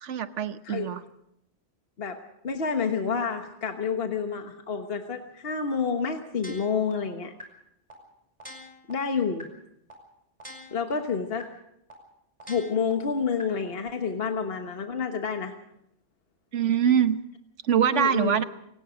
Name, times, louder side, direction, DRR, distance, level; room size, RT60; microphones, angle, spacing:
voice 1, 0.0-1.0 16.5-17.2 17.6-18.4, right 8 dB, 90° right, 11 dB, 1.3 m, -23 dB
voice 2, 2.4-7.3 8.9-9.5 10.7-11.5 12.5-15.5 17.9-18.4, left 5 dB, 55° left, 5 dB, 1.5 m, -29 dB
sound 1, 6.4-6.9 7.4-7.5 7.9-8.0 8.4-8.9 9.4-9.5 9.9-10.0 10.4-10.9 11.4-11.5 11.9-12.0 12.4-12.9 13.4-13.5, left 1 dB, 30° right, 5.4 m, -43 dB
28.5 x 18.0 x 5.2 m, 0.77 s
omnidirectional pair, 1.2 m